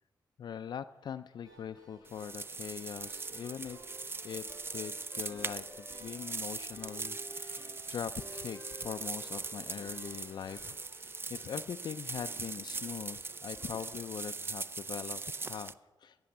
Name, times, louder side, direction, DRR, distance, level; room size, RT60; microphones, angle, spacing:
voice 1, 0.4-3.9 4.2-16.2, left 8 dB, 65° left, 9 dB, 0.4 m, -42 dB
sound 1, 1.4-14.1, right 1 dB, 50° right, 5.8 m, -55 dB
sound 2, 2.1-15.7, right 4 dB, 30° right, 0.4 m, -41 dB
Wind instrument woodwind instrument, 3.2-6.8 7.2-10.8, left 2 dB, 25° left, 1.0 m, -57 dB
14.5 x 6.9 x 9.2 m, 1.2 s
cardioid pair, 85°, 8 cm